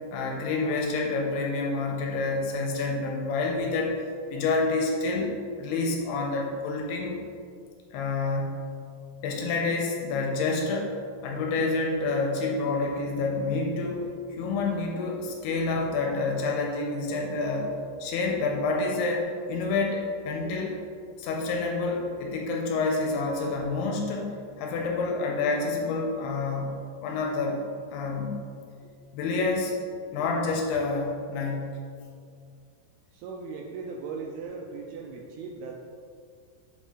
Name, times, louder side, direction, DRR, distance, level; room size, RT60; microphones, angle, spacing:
voice 1, 0.1-3.9 4.3-5.3 5.6-7.2 7.9-8.7 9.2-11.0 11.2-14.0 14.3-20.8 21.2-27.6 27.9-28.5 29.1-29.7 30.1-31.8, left 3 dB, 80° left, 0 dB, 2.7 m, -28 dB
voice 2, 33.1-35.7, right 4 dB, 85° right, 1 dB, 2.3 m, -38 dB
7.9 x 3.7 x 4.9 m, 2.3 s
omnidirectional pair, 5.0 m